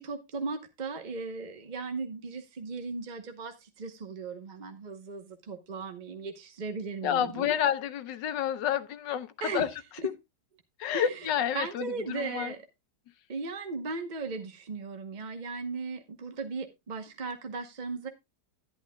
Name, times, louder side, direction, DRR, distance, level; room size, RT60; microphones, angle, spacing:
voice 1, 0.0-7.6 9.4-9.6 10.0-10.1 10.9-12.6 13.3-18.1, right 4 dB, 35° right, 0.9 m, -37 dB
voice 2, 7.0-9.3 9.5-9.7 10.8-12.5, left 9 dB, 85° left, 1.5 m, -29 dB
11.5 x 11.0 x 2.2 m
omnidirectional pair, 1.9 m